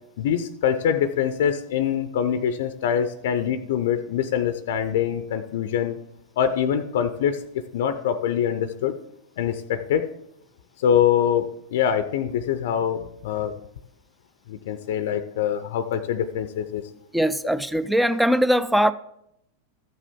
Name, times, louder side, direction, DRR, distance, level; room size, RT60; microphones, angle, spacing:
voice 1, 0.2-6.0 6.4-8.9 9.4-10.1 10.8-13.5 14.5-16.8, left 8 dB, 55° left, 0.6 m, -24 dB
voice 2, 17.1-18.9, equal, ahead, 0.4 m, -21 dB
14.0 x 7.3 x 3.6 m
figure-of-eight pair, 90°, 0 cm